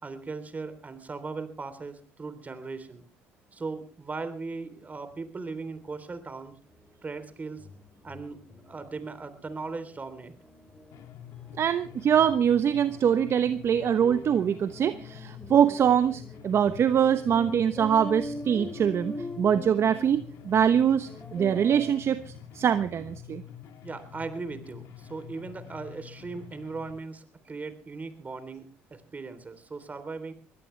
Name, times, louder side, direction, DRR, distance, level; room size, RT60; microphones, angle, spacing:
voice 1, 0.0-3.0 3.5-6.6 7.0-7.7 8.0-10.3 23.8-30.3, right 4 dB, 30° right, 11 dB, 3.5 m, -38 dB
sound 1, 6.7-6.8 7.2-7.3 7.6-22.0, left 1 dB, 15° left, 4.7 m, -43 dB
sound 2, 10.9-26.9, left 10 dB, 70° left, 2.7 m, -47 dB
voice 2, 11.6-23.4, right 8 dB, 50° right, 11 dB, 0.9 m, -24 dB
22.0 x 17.0 x 3.3 m, 0.38 s
supercardioid pair, 75°, 6 cm